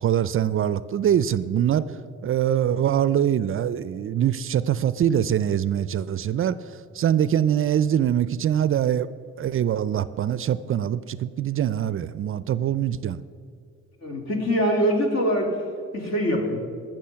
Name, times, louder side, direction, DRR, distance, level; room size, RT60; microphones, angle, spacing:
voice 1, 0.0-9.1 9.4-13.2, right 10 dB, 45° right, 16 dB, 0.4 m, -23 dB
voice 2, 14.0-15.6 15.9-16.6, equal, 60° left, 1 dB, 2.8 m, -23 dB
15.0 x 6.4 x 5.6 m, 2.3 s
cardioid pair, 90°, 30 cm